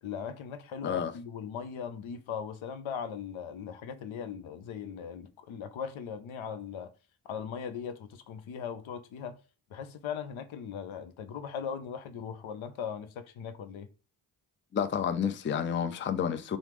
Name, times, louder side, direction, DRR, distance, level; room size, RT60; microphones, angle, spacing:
voice 1, 0.0-6.9 7.2-9.4 9.7-13.9, left 7 dB, 70° left, 0.6 m, -39 dB
voice 2, 14.7-16.6, left 8 dB, 25° left, 0.4 m, -30 dB
3.2 x 2.0 x 3.0 m
cardioid pair, 50°, 49 cm